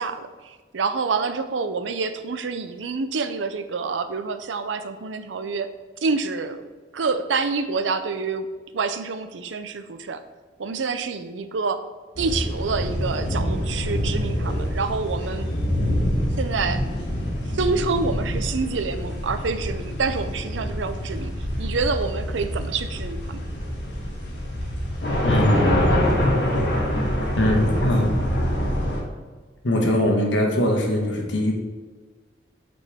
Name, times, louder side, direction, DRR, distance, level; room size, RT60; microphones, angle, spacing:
voice 1, 0.0-5.7 6.0-6.7 6.9-8.5 8.7-10.2 10.6-11.8 12.2-15.5 16.4-16.8 17.5-23.4, right 4 dB, 85° right, 9 dB, 0.5 m, -27 dB
sound 1, 12.2-29.0, equal, 65° left, 1.6 m, -25 dB
voice 2, 25.2-25.9 27.4-28.2 29.6-31.5, left 1 dB, 85° left, 1 dB, 1.3 m, -21 dB
8.2 x 4.3 x 3.5 m, 1.4 s
head